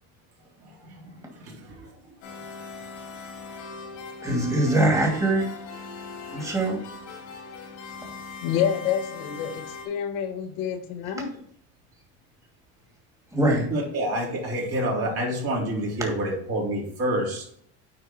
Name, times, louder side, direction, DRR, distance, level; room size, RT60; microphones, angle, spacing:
voice 1, 1.4-1.9 13.7-17.4, right 1 dB, 40° right, -2 dB, 3.4 m, -28 dB
sound 1, 2.2-9.8, left 4 dB, 85° left, 2.7 m, -40 dB
voice 2, 4.2-5.5 6.3-6.8 13.3-13.7, right 1 dB, 10° right, 0 dB, 2.5 m, -22 dB
voice 3, 8.4-11.4, left 8 dB, 70° left, 6 dB, 1.3 m, -28 dB
9.2 x 4.5 x 4.4 m, 0.63 s
supercardioid pair, 125°, 36 cm